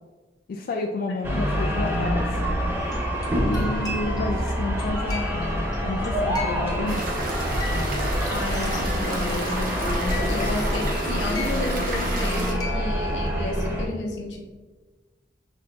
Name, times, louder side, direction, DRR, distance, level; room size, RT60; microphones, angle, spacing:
voice 1, 0.5-2.4 3.4-7.3 7.7-8.1 10.4-10.5, left 2 dB, 55° left, 2 dB, 0.3 m, -31 dB
sound 1, 1.2-13.9, equal, 15° right, 0.7 m, -26 dB
sound 2, 2.8-12.9, left 2 dB, 20° left, 0.8 m, -39 dB
sound 3, 6.9-12.5, right 1 dB, 50° right, 0.7 m, -31 dB
voice 2, 7.9-14.4, left 2 dB, 85° left, 1 dB, 0.8 m, -32 dB
5.8 x 3.5 x 2.4 m, 1.3 s
head